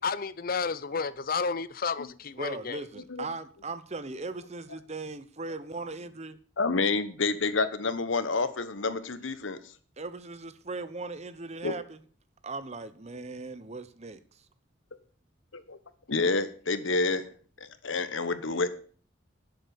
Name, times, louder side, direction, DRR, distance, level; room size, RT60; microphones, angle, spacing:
voice 1, 0.0-2.8, left 5 dB, 50° left, 0.6 m, -31 dB
voice 2, 2.4-6.4 10.0-12.0 12.4-14.2, right 3 dB, 35° right, 0.9 m, -38 dB
voice 3, 6.6-9.6 11.6-11.7 15.5-15.8 16.1-17.3 17.6-18.7, left 3 dB, 85° left, 1.2 m, -28 dB
11.0 x 7.9 x 7.0 m
head